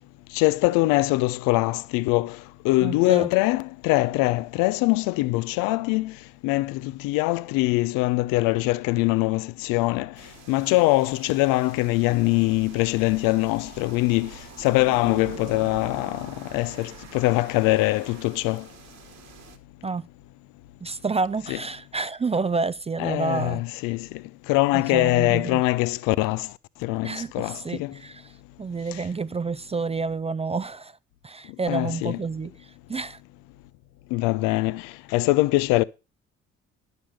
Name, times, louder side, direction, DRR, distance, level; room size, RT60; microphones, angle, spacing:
voice 1, 0.3-2.3 2.6-6.1 6.4-10.1 10.5-14.3 14.6-18.6 21.5-21.6 23.0-24.1 24.5-26.5 26.8-27.9 31.7-32.2 34.1-34.8 35.1-35.8, left 20 dB, 70° left, 0.7 m, -23 dB
voice 2, 2.8-3.3 19.8-20.1 20.8-23.6 24.7-25.6 27.0-28.2 28.6-31.0 31.2-33.2, right 4 dB, 20° right, 0.5 m, -29 dB
sound 1, 9.6-18.2, right 6 dB, 70° right, 3.1 m, -53 dB
sound 2, 10.2-19.6, right 8 dB, 50° right, 2.0 m, -45 dB
11.5 x 6.8 x 5.7 m
hypercardioid pair, 50°, 35 cm